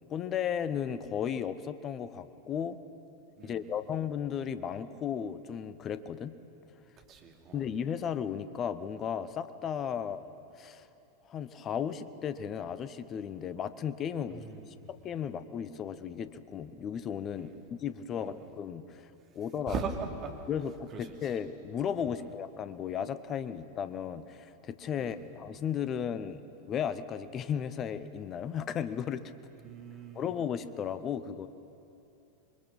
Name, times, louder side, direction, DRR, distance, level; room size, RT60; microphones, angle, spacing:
voice 1, 0.1-2.8 3.4-6.3 7.5-10.3 10.5-10.9 11.3-19.1 19.3-19.8 20.5-26.4 26.7-29.3 30.1-31.5, left 8 dB, 30° left, 13 dB, 0.9 m, -35 dB
voice 2, 3.4-3.7 7.0-7.7 9.9-10.1 14.3-14.9 17.3-17.6 18.1-18.5 19.7-20.3 20.9-21.3 22.2-22.3 24.9-25.3 29.6-30.3, right 5 dB, 30° right, 2 dB, 2.7 m, -41 dB
25.5 x 22.5 x 5.6 m, 2.8 s
figure-of-eight pair, 90°, 0 cm